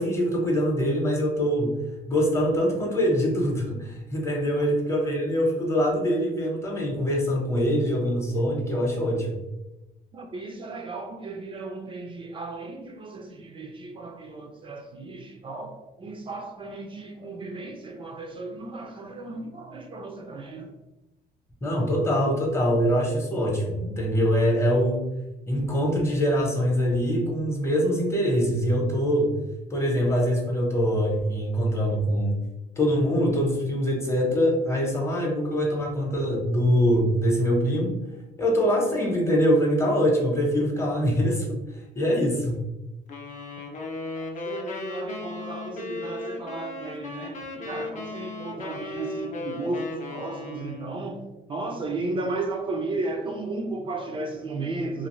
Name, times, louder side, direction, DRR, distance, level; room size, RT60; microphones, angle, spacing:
voice 1, 0.0-1.8 2.1-9.4 21.6-25.0 25.5-29.3 29.7-32.4 32.8-37.9 38.4-41.6 41.9-42.6, equal, 15° left, -1 dB, 0.8 m, -24 dB
voice 2, 10.1-20.7 44.4-51.2 51.5-55.1, right 2 dB, 30° right, 3 dB, 0.4 m, -34 dB
sound 1, 43.1-51.0, left 2 dB, 45° left, 0.6 m, -36 dB
2.5 x 2.4 x 3.0 m, 0.99 s
cardioid pair, 110°, 17 cm